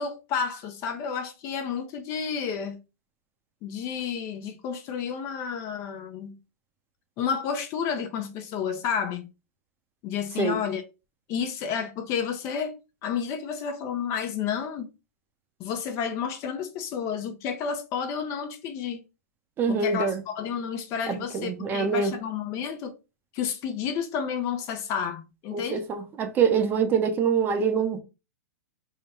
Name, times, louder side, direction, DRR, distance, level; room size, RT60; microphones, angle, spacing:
voice 1, 0.0-2.8 3.6-6.4 7.2-9.2 10.0-10.8 11.3-12.8 13.0-14.9 15.6-19.0 19.7-22.9 23.3-25.8, left 7 dB, 35° left, 0.6 m, -31 dB
voice 2, 19.6-20.2 21.1-22.2 25.5-28.0, right 6 dB, 25° right, 0.6 m, -25 dB
3.7 x 2.2 x 4.2 m
hypercardioid pair, 135°, 9 cm